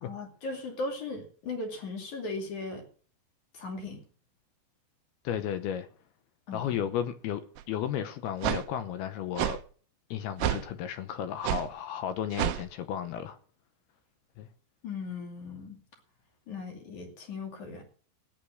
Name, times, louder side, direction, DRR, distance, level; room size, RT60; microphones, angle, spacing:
voice 1, 0.0-2.9 3.5-4.0 6.5-6.9 14.8-15.8 16.5-17.8, left 3 dB, 45° left, 3.4 m, -38 dB
voice 2, 5.2-5.9 6.5-9.6 10.1-13.4 14.4-14.5, left 9 dB, 75° left, 2.5 m, -33 dB
sound 1, 7.6-7.7 8.4-8.6 9.4-9.6 10.4-10.7 11.4-11.7 12.3-12.6, right 13 dB, 80° right, 2.1 m, -29 dB
14.5 x 10.5 x 6.5 m
omnidirectional pair, 5.5 m